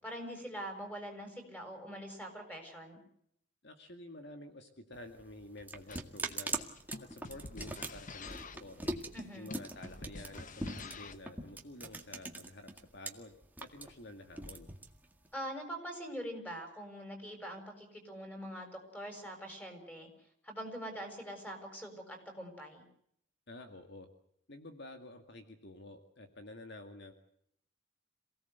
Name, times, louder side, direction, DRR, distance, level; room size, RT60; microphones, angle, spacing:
voice 1, 0.0-3.0 9.1-9.6 15.3-20.1 20.4-22.9, equal, 10° left, 4 dB, 6.6 m, -44 dB
voice 2, 3.6-6.7 7.0-8.8 9.3-14.7 23.5-24.1 24.5-27.1, left 1 dB, 55° left, 6 dB, 2.2 m, -50 dB
sound 1, 4.9-13.1 13.4-15.3, right 2 dB, 10° right, 1.9 m, -41 dB
sound 2, 5.9-11.3, left 3 dB, 40° left, 1.0 m, -49 dB
27.5 x 17.5 x 8.1 m, 0.70 s
head